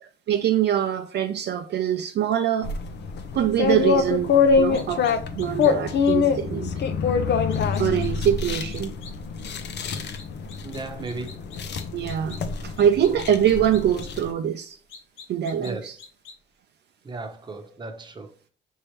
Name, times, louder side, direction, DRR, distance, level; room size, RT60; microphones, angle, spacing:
voice 1, 0.0-2.7 3.3-5.1 5.3-6.7 7.8-8.9 11.9-14.8 15.3-16.0, right 10 dB, 60° right, 0.5 m, -24 dB
sound 1, 2.6-14.3, left 5 dB, 60° left, 0.7 m, -25 dB
sound 2, 4.7-5.7 6.0-6.1 7.5-8.3 8.7-9.1 9.9-10.8 11.0-12.4 12.8-14.1 14.9-15.7 16.0-16.3, left 5 dB, 85° left, 1.0 m, -45 dB
voice 2, 10.6-11.3 15.6-15.9 17.0-18.3, right 3 dB, 20° right, 0.9 m, -35 dB
5.4 x 3.0 x 3.2 m
cardioid pair, 90°, 20 cm